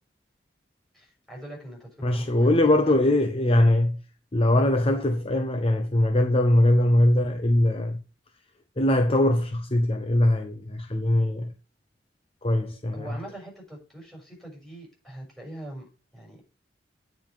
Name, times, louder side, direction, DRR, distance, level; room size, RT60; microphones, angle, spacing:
voice 1, 0.9-3.0 12.9-15.8 16.1-16.4, right 1 dB, ahead, 6.3 m, -42 dB
voice 2, 2.0-4.0 4.3-8.0 8.8-11.5 12.4-13.1, left 1 dB, 30° left, 0.9 m, -21 dB
9.1 x 5.3 x 7.6 m
head